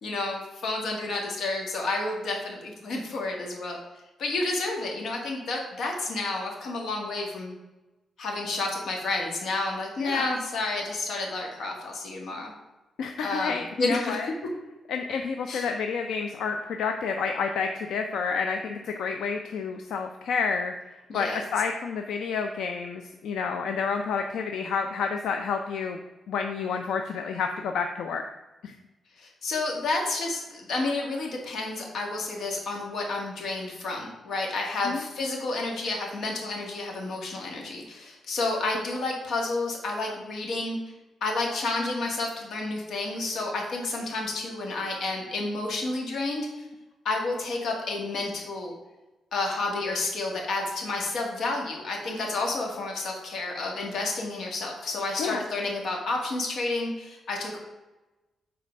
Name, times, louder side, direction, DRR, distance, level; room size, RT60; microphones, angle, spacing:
voice 1, 0.0-3.8 4.2-7.5 8.2-12.5 13.2-14.2 15.5-15.7 21.1-21.4 29.2-40.8 41.2-46.7 47.0-48.7 49.3-57.6, left 2 dB, 70° left, 0 dB, 2.0 m, -30 dB
voice 2, 13.0-14.3 14.9-20.7 21.1-26.0 26.3-28.2 28.6-28.7 34.8-35.0 55.2-55.4, left 5 dB, 90° left, 5 dB, 0.5 m, -29 dB
7.7 x 4.4 x 5.2 m, 1.1 s
wide cardioid pair, 145°, 0 cm